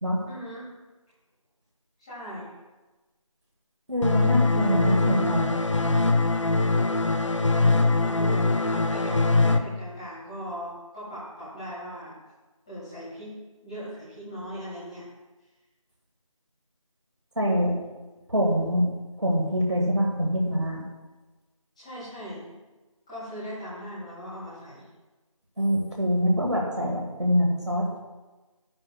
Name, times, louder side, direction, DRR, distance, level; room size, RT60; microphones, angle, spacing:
voice 1, 0.2-0.7 2.0-2.5 7.4-12.1 12.6-13.4 13.6-15.0 21.8-22.5 23.1-24.8, equal, 10° left, -12 dB, 2.9 m, -39 dB
voice 2, 3.9-5.5 17.4-17.7 18.3-18.9 19.2-20.8 25.6-28.0, equal, 55° right, -1 dB, 1.9 m, -24 dB
sound 1, 4.0-9.6, left 3 dB, 60° left, 0.7 m, -22 dB
11.0 x 9.8 x 2.4 m, 1.2 s
figure-of-eight pair, 170°, 18 cm